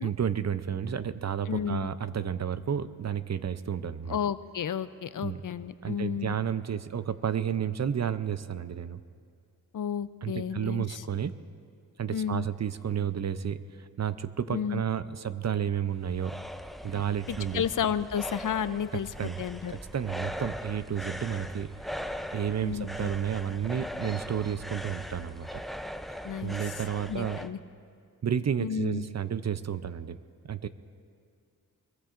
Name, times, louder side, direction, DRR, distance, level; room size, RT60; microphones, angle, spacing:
voice 1, 0.0-4.2 5.2-5.4 5.8-9.0 10.2-11.3 12.0-16.4 16.8-17.6 19.2-19.4 19.7-21.7 22.3-25.6 26.4-27.4 28.2-30.2 30.4-30.7, right 8 dB, 50° right, 13 dB, 0.6 m, -31 dB
voice 2, 1.5-1.9 4.1-6.4 9.7-11.0 12.1-12.5 14.5-14.8 17.3-19.1 19.4-19.7 22.6-23.1 26.2-26.6 27.1-27.6 28.6-29.0, left 8 dB, 60° left, 14 dB, 0.5 m, -32 dB
sound 1, 15.7-27.5, equal, ahead, 0.5 m, -40 dB
24.0 x 22.0 x 2.5 m, 2.3 s
wide cardioid pair, 75°, 35 cm